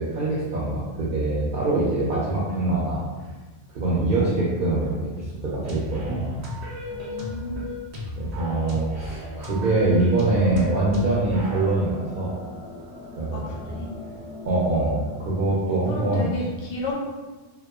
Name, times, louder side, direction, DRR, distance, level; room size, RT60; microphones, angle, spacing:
voice 1, 0.0-3.0 3.7-6.3 8.1-12.3 13.2-13.4 14.4-16.3, right 2 dB, 60° right, -7 dB, 0.7 m, -24 dB
sound 1, 5.6-11.7, left 2 dB, 85° right, 0.9 m, -35 dB
voice 2, 6.9-7.7 13.3-13.9 15.9-17.0, left 2 dB, 65° left, -3 dB, 0.8 m, -33 dB
sound 2, 10.1-15.6, left 2 dB, 40° left, 0.5 m, -42 dB
2.8 x 2.1 x 2.3 m, 1.2 s
omnidirectional pair, 1.1 m